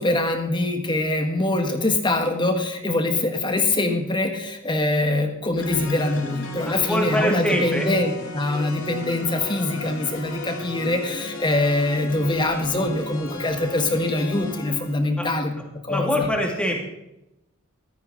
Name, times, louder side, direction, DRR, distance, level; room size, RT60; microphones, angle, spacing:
voice 1, 0.0-15.5 15.8-16.3, left 2 dB, 20° left, 5 dB, 1.6 m, -23 dB
sound 1, 5.6-15.0, left 2 dB, 90° left, 2.2 m, -36 dB
voice 2, 6.7-7.9 15.2-15.3 15.9-16.8, equal, 5° left, 0 dB, 2.6 m, -24 dB
14.5 x 13.5 x 4.0 m, 0.92 s
head